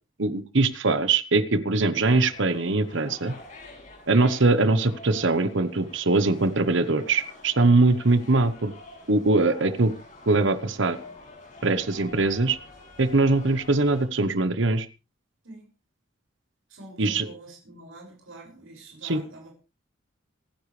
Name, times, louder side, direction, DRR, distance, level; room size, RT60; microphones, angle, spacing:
voice 1, 0.2-3.3 4.1-8.7 9.1-9.9 10.3-11.0 11.6-12.6 13.0-14.9 17.0-17.3 19.0-19.2, right 3 dB, 65° right, 12 dB, 1.1 m, -22 dB
sound 1, 1.9-14.0, left 2 dB, 35° left, 7.6 m, -47 dB
voice 2, 16.7-19.5, right 1 dB, 85° right, 0 dB, 6.5 m, -46 dB
27.0 x 10.0 x 3.3 m, 0.32 s
head